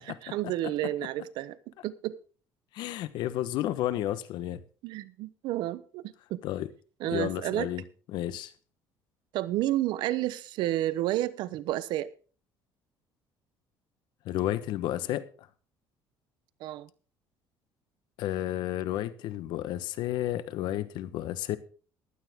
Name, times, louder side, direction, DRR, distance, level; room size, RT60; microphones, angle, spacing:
voice 1, 0.1-1.6 1.8-2.2 4.8-6.4 7.0-7.7 9.3-12.1 16.6-16.9, right 14 dB, 75° right, 0.9 m, -31 dB
voice 2, 2.7-4.6 6.4-6.7 7.1-7.8 8.1-8.5 14.2-15.2 18.2-21.6, left 13 dB, 70° left, 1.1 m, -31 dB
15.5 x 12.0 x 3.6 m
supercardioid pair, 95°, 8 cm